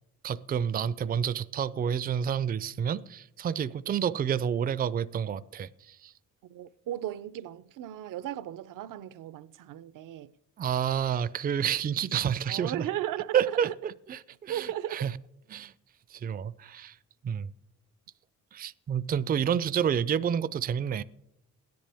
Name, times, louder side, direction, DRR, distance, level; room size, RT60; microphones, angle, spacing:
voice 1, 0.2-6.1 10.6-12.9 13.3-15.1 15.5-15.7 16.1-17.0 17.2-17.5 18.5-21.0, right 8 dB, 30° right, 0.4 m, -29 dB
voice 2, 6.5-10.3 12.5-13.7 14.5-15.0, right 12 dB, 75° right, 0.6 m, -36 dB
16.5 x 10.5 x 3.4 m
cardioid pair, 90°, 32 cm